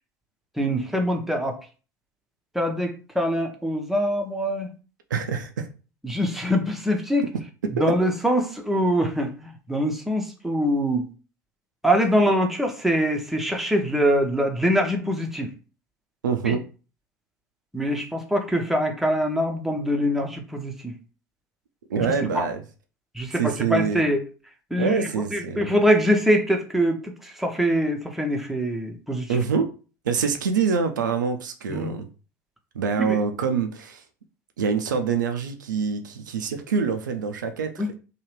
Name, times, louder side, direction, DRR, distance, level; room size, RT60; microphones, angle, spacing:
voice 1, 0.6-1.6 2.5-4.7 6.0-7.3 7.8-11.1 11.8-15.5 16.4-16.6 17.7-20.9 22.3-22.4 23.1-24.2 24.7-29.4 31.7-31.9 33.0-33.2 37.8-37.9, equal, 5° right, 2 dB, 0.7 m, -24 dB
voice 2, 5.1-5.7 7.6-7.8 16.2-16.6 21.9-22.6 23.4-24.0 24.8-25.8 29.3-29.7 30.0-32.1 32.7-34.0 34.6-38.0, right 6 dB, 80° right, 6 dB, 0.4 m, -25 dB
2.8 x 2.3 x 3.2 m, 0.35 s
figure-of-eight pair, 70°, 10 cm